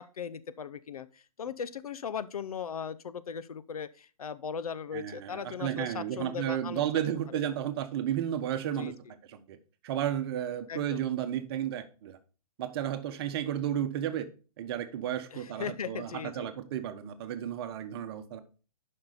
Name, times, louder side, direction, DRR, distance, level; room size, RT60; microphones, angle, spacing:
voice 1, 0.0-6.9 7.3-7.4 8.6-8.9 10.7-11.1 15.3-16.5, left 7 dB, 70° left, 0.8 m, -38 dB
voice 2, 4.9-8.9 9.3-9.6 9.8-12.2 12.6-14.3 14.6-18.4, right 10 dB, 40° right, 1.1 m, -33 dB
11.0 x 5.6 x 4.1 m
hypercardioid pair, 135°, 19 cm